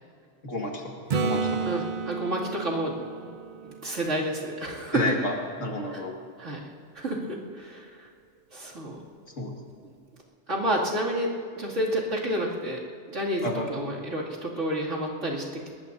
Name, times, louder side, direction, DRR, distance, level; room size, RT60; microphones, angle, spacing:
voice 1, 0.4-0.8 1.2-1.5 4.9-5.4 5.6-6.1 9.4-9.5 13.4-13.7, left 2 dB, 90° left, 0 dB, 2.4 m, -29 dB
Acoustic guitar / Strum, 1.1-4.9 9.7-9.8, right 4 dB, 45° right, 0.8 m, -32 dB
voice 2, 1.6-3.0 3.6-5.0 5.9-6.0 6.4-6.6 6.9-7.8 8.5-9.0 10.5-12.8 13.1-15.4, right 1 dB, 75° right, -4 dB, 2.9 m, -29 dB
22.0 x 20.0 x 2.7 m, 2.2 s
omnidirectional pair, 1.3 m